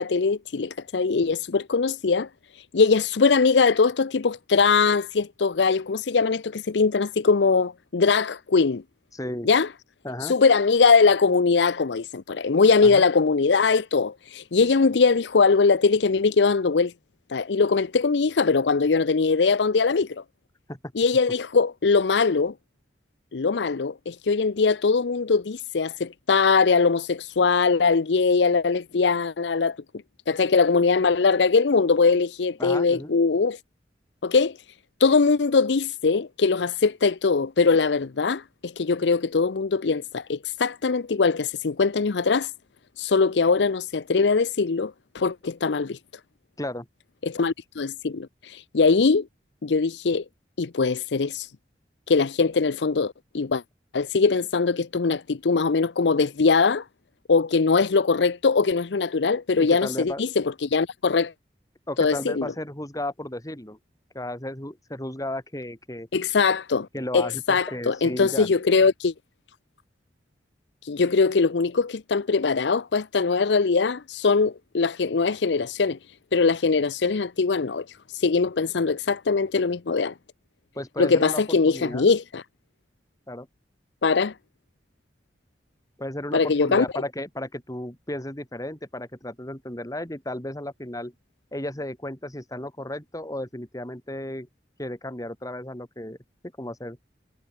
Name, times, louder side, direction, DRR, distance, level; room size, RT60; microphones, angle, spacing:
voice 1, 0.0-2.3 2.7-8.8 9.4-9.7 10.2-16.9 17.3-20.2 20.9-22.5 23.3-29.8 30.3-33.6 34.2-34.6 35.0-42.5 43.0-46.0 47.2-49.3 49.6-50.2 50.6-51.5 52.1-53.6 53.9-56.8 57.3-61.3 62.0-62.5 66.1-66.9 67.1-69.1 70.8-76.0 76.3-77.9 78.1-80.1 81.0-82.4 84.0-84.3 86.3-86.8, left 4 dB, 80° left, 0.6 m, -21 dB
voice 2, 9.1-9.5 10.0-10.3 12.8-13.0 20.7-20.8 32.6-33.2 46.6-46.9 59.6-60.2 61.9-63.8 64.1-66.1 66.9-68.5 80.7-82.0 83.3-83.5 86.0-91.1 91.5-94.5 94.8-96.2 96.6-97.0, left 1 dB, 20° left, 4.2 m, -34 dB
head